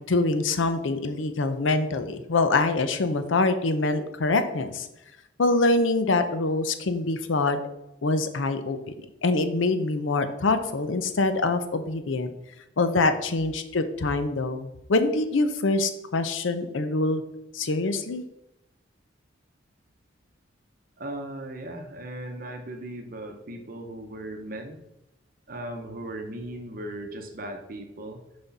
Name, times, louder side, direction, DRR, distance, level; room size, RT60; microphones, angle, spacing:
voice 1, 0.1-4.9 5.4-7.6 8.0-8.8 9.2-12.3 12.8-17.2 17.5-18.2, left 3 dB, 80° left, 9 dB, 0.7 m, -24 dB
voice 2, 21.0-24.8 25.5-28.2, right 1 dB, 45° right, 4 dB, 0.7 m, -37 dB
6.0 x 5.1 x 4.0 m, 0.88 s
head